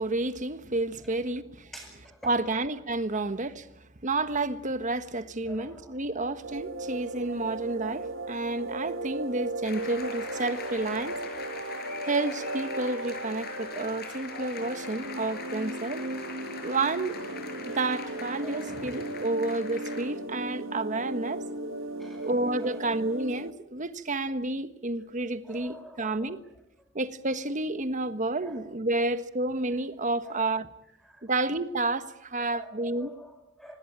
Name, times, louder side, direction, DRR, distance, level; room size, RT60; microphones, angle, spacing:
voice 1, 0.0-1.7 2.2-3.7 4.0-11.2 12.1-16.0 16.6-17.2 17.6-21.4 22.2-26.4 26.9-30.7 31.2-33.1, right 2 dB, 40° right, 1.4 m, -30 dB
voice 2, 1.7-2.6 3.1-3.3 5.4-6.1 18.4-19.2 22.0-22.3 22.6-22.7 25.4-26.3 28.4-28.6 30.2-30.4 31.0-31.2 32.4-33.8, right 1 dB, 5° left, 7.9 m, -47 dB
sound 1, 6.4-23.5, right 2 dB, 85° right, 1.7 m, -36 dB
sound 2, 9.6-20.0, left 4 dB, 55° left, 6.3 m, -42 dB
26.0 x 19.0 x 9.0 m
head